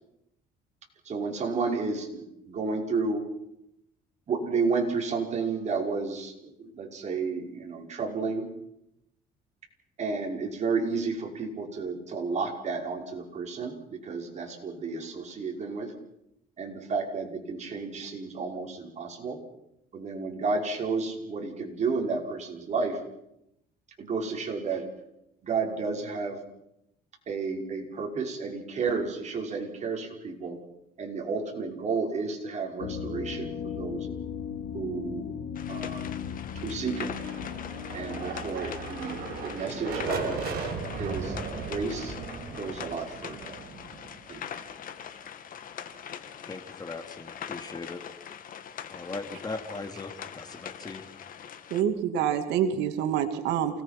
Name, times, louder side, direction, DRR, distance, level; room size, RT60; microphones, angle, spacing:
voice 1, 1.0-3.2 4.3-8.5 10.0-15.9 16.6-19.4 19.9-23.0 24.0-24.8 25.4-26.4 27.3-30.6 31.0-34.1 34.7-35.3 35.7-36.0 36.6-37.1 37.9-40.4 41.0-42.1 42.5-43.5 44.3-44.4, right 4 dB, 45° right, 1 dB, 5.6 m, -32 dB
sound 1, 32.8-41.5, left 7 dB, 85° left, 2.7 m, -38 dB
sound 2, 35.6-51.8, left 8 dB, 55° left, 2.0 m, -42 dB
sound 3, 36.9-44.7, right 5 dB, 65° right, 5.3 m, -37 dB
voice 2, 46.5-48.0 48.9-51.0, left 3 dB, 25° left, 6 dB, 2.6 m, -39 dB
voice 3, 51.7-53.8, right 9 dB, 90° right, 7 dB, 2.3 m, -27 dB
28.5 x 19.0 x 6.0 m, 0.81 s
cardioid pair, 110°, 17 cm